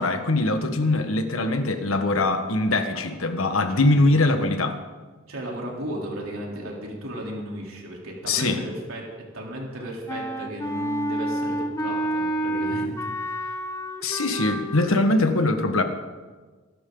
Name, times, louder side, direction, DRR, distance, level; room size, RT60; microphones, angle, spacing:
voice 1, 0.0-4.8 8.3-8.6 14.0-15.8, left 2 dB, 75° left, 7 dB, 1.5 m, -22 dB
voice 2, 5.3-9.1 9.3-13.6, right 1 dB, 80° right, -2 dB, 3.5 m, -35 dB
Wind instrument woodwind instrument, 10.1-15.0, right 1 dB, 15° left, 1.0 m, -29 dB
24.0 x 12.0 x 3.9 m, 1.4 s
head